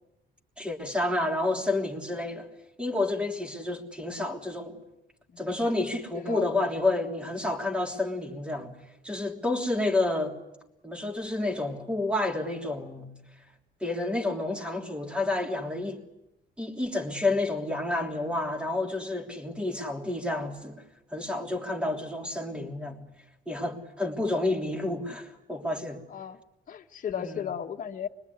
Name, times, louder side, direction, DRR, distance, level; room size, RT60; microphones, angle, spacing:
voice 1, 0.6-2.5 2.8-4.8 5.4-8.7 9.0-10.3 10.8-13.1 13.8-16.0 16.6-20.8 21.1-23.0 23.5-26.0 27.2-27.5, left 2 dB, 5° right, 3.3 m, -30 dB
voice 2, 6.1-6.5 26.1-26.4 26.7-28.1, left 8 dB, 45° left, 1.7 m, -35 dB
25.5 x 23.0 x 9.6 m
cardioid pair, 140°, 20 cm